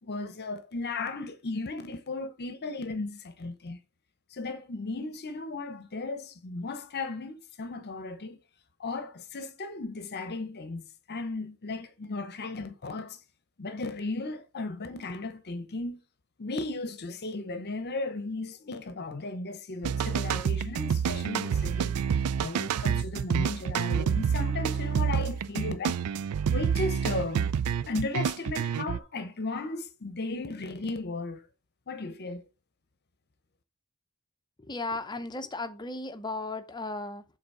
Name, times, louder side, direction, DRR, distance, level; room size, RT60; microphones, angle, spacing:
voice 1, 0.0-3.8 4.3-8.4 8.8-13.2 13.6-16.0 16.4-26.0 26.5-27.5 27.9-31.5 31.9-32.4, left 3 dB, 50° left, 0.8 m, -35 dB
sound 1, 19.8-29.0, right 7 dB, 90° right, 0.4 m, -28 dB
voice 2, 34.6-37.2, left 2 dB, 20° left, 0.7 m, -35 dB
7.9 x 4.0 x 4.8 m
head